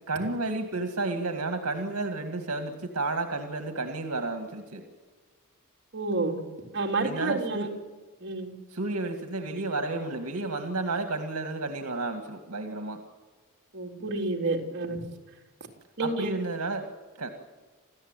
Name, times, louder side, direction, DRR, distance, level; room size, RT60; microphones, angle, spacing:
voice 1, 0.1-4.8 7.0-7.7 8.7-13.0 16.0-16.9 17.2-17.3, right 3 dB, 80° right, 6 dB, 2.0 m, -31 dB
voice 2, 5.9-6.4 6.7-7.7 8.2-8.5 13.7-15.0 16.0-16.3, right 3 dB, 50° right, 0 dB, 3.6 m, -29 dB
27.0 x 15.0 x 9.1 m, 1.3 s
head